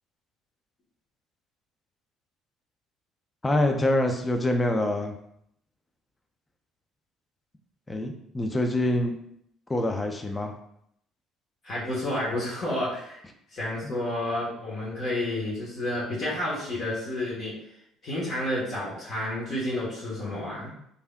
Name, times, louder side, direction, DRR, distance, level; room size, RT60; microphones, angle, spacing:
voice 1, 3.4-5.1 7.9-9.1 9.7-10.5 13.8-13.9, left 1 dB, 20° left, 4 dB, 0.5 m, -25 dB
voice 2, 11.6-13.2 13.5-17.5 18.0-20.7, left 1 dB, 50° left, -7 dB, 1.1 m, -30 dB
3.2 x 2.7 x 2.2 m, 0.72 s
hypercardioid pair, 55°, 0 cm